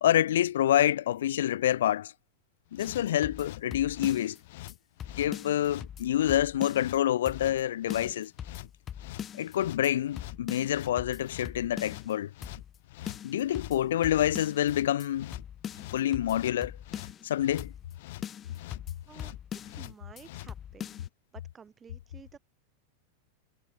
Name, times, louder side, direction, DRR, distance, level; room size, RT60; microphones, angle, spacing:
voice 1, 0.0-2.1 2.7-4.4 5.1-8.3 9.4-12.3 13.2-15.3 15.9-16.7 17.2-17.7, left 12 dB, 85° left, 0.6 m, -27 dB
sound 1, 2.7-20.5, left 19 dB, 65° left, 2.3 m, -46 dB
sound 2, 2.8-4.4 4.7-4.8 5.0-7.0 7.3-7.6 7.9-9.5 9.8-9.9 10.2-12.1 12.4-12.8 13.1-14.7 15.0-15.1 15.3-17.3 17.6-17.9 18.2-19.9 20.2-20.3 20.5-21.1, left 9 dB, 25° left, 2.2 m, -42 dB
voice 2, 19.8-21.0 21.3-22.4, right 6 dB, 20° right, 5.4 m, -52 dB
supercardioid pair, 140°, 0 cm